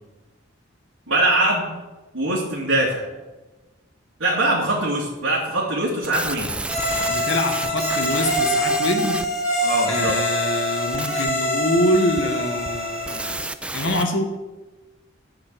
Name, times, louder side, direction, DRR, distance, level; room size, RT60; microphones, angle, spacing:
voice 1, 1.1-1.6 2.1-3.0 4.2-6.5 9.6-10.2, right 1 dB, 85° right, -6 dB, 2.5 m, -22 dB
sound 1, 6.0-14.0, right 2 dB, 5° right, 0.3 m, -33 dB
sound 2, 6.7-13.4, left 1 dB, 35° left, 2.6 m, -25 dB
voice 2, 7.1-9.2 9.9-14.3, left 1 dB, 65° left, 5 dB, 1.5 m, -24 dB
11.5 x 5.2 x 7.8 m, 1.2 s
head